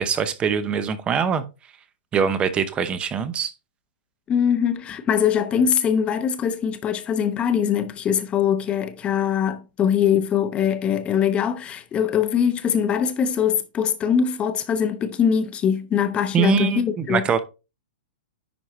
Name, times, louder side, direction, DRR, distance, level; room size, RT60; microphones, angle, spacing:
voice 1, 0.0-1.4 2.1-3.5 16.3-17.4, right 7 dB, 20° right, 0.8 m, -23 dB
voice 2, 4.3-17.2, left 8 dB, 20° left, 0.9 m, -22 dB
10.5 x 4.6 x 3.2 m
hypercardioid pair, 145°, 6 cm